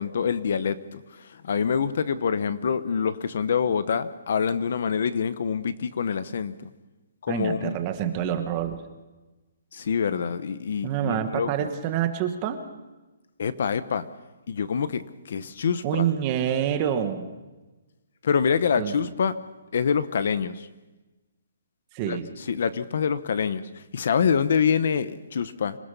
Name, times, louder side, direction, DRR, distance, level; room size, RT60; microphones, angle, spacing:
voice 1, 0.0-6.7 7.2-7.8 9.7-11.7 13.4-14.0 14.5-16.1 18.2-19.3 19.7-20.7 22.1-22.2 22.5-25.8, left 6 dB, 45° left, 14 dB, 0.9 m, -26 dB
voice 2, 7.3-8.8 10.8-12.6 15.8-17.3 18.8-18.9 21.9-22.3, right 10 dB, 20° right, 8 dB, 1.3 m, -27 dB
26.5 x 16.5 x 6.8 m, 1.1 s
hypercardioid pair, 180°, 0 cm